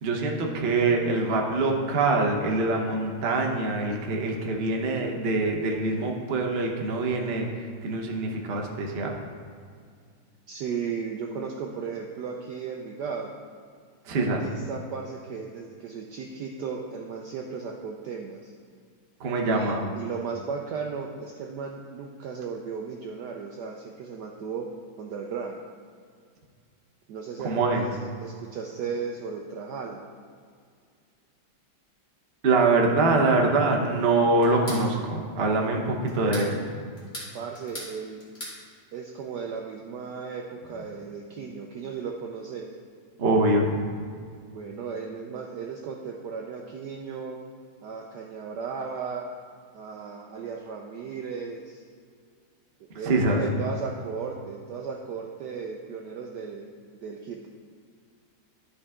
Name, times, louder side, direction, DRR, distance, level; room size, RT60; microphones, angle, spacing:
voice 1, 0.0-7.5 7.8-9.1 14.1-14.4 19.2-19.9 27.4-27.8 32.4-36.6 43.2-43.8 53.0-53.4, right 3 dB, 45° right, 1 dB, 0.8 m, -24 dB
voice 2, 10.5-13.3 14.1-18.5 19.5-24.7 25.0-25.6 27.1-30.0 37.3-38.2 38.9-42.7 44.5-47.4 47.8-49.3 49.7-51.8 52.9-56.7 57.0-57.5, right 5 dB, 70° right, 1 dB, 1.0 m, -35 dB
sound 1, 34.4-34.9 36.1-36.5 37.0-37.9 38.2-38.6, left 1 dB, 20° left, 2.1 m, -38 dB
12.5 x 4.8 x 3.6 m, 2.1 s
omnidirectional pair, 2.3 m